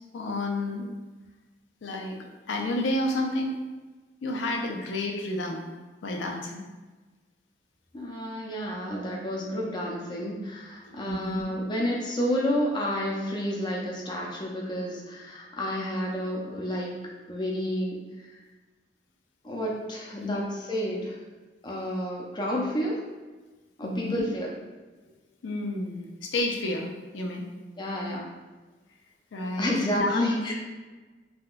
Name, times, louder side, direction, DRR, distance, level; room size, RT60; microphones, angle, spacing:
voice 1, 0.1-0.9 1.8-3.5 4.2-5.6 6.0-6.6 10.9-11.4 20.2-20.4 23.8-24.3 25.4-26.9 27.1-27.5 29.3-30.2, left 1 dB, 85° left, 1 dB, 0.4 m, -30 dB
voice 2, 7.9-16.9 17.3-18.0 18.2-18.3 19.4-21.2 21.6-23.0 23.8-24.5 27.8-28.3 29.6-30.5, equal, 25° left, -3 dB, 0.4 m, -30 dB
3.5 x 2.2 x 2.4 m, 1.2 s
head